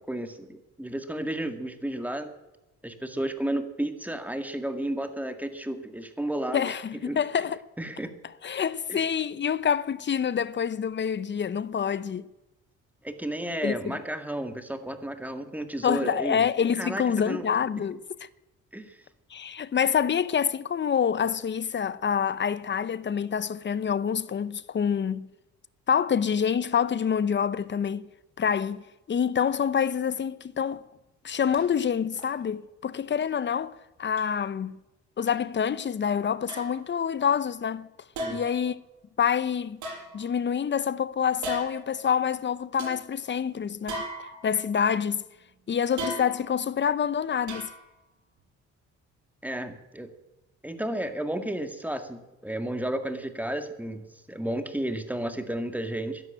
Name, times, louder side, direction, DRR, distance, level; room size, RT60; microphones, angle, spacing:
voice 1, 0.0-2.3 2.8-6.7 7.0-7.2 7.8-8.1 8.9-9.0 13.0-16.4 16.7-17.5 18.7-19.0 38.2-38.4 49.4-50.1 50.6-56.2, right 1 dB, 5° right, 1.9 m, -32 dB
voice 2, 6.5-7.6 8.4-12.3 13.6-14.0 15.8-18.0 19.3-25.3 25.9-28.1 28.4-30.8 31.2-34.8 35.2-37.9 38.3-38.8 39.2-39.8 40.1-44.0 44.4-45.2 45.7-47.7, left 7 dB, 40° left, 0.8 m, -27 dB
sound 1, 31.5-31.6 32.2-32.4 33.2-33.3 34.2-34.3 35.3-35.4 36.5-36.8 38.1-38.6 39.7-40.6 41.4-41.9 42.4-42.5 42.8-43.0 43.9-44.7 46.0-46.6 47.5-48.1 48.4-48.5, right 1 dB, 75° right, 5.8 m, -37 dB
13.5 x 11.0 x 8.9 m
cardioid pair, 90°, 30 cm